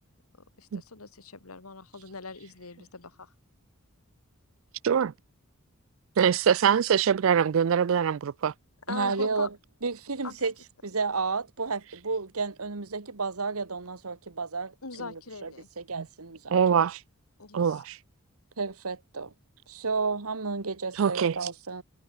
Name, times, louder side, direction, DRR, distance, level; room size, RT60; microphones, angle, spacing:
voice 1, 0.6-3.3 8.9-9.5 10.2-10.3 14.8-15.7 17.4-17.8, left 4 dB, 90° left, 2.1 m, -41 dB
voice 2, 6.2-8.5 16.0-16.1 16.5-17.0 17.5-18.0 21.0-21.4, right 7 dB, 65° right, 0.4 m, -23 dB
voice 3, 8.9-9.5 9.8-10.5 10.8-16.9 18.6-19.3 19.7-21.8, right 4 dB, 90° right, 1.6 m, -32 dB
head